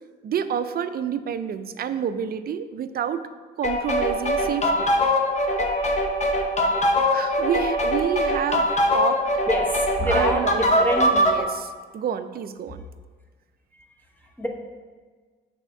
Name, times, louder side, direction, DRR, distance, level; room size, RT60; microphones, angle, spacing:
voice 1, 0.2-3.2 3.6-4.9 7.1-8.7 8.9-9.2 10.1-10.9 11.1-12.8, right 8 dB, 50° right, 11 dB, 0.4 m, -28 dB
sound 1, 3.6-11.4, left 1 dB, 35° left, 0.9 m, -22 dB
voice 2, 9.5-11.1 13.7-13.8 14.2-14.5, equal, 10° left, 0 dB, 1.1 m, -26 dB
6.8 x 3.5 x 5.8 m, 1.5 s
cardioid pair, 90°, 20 cm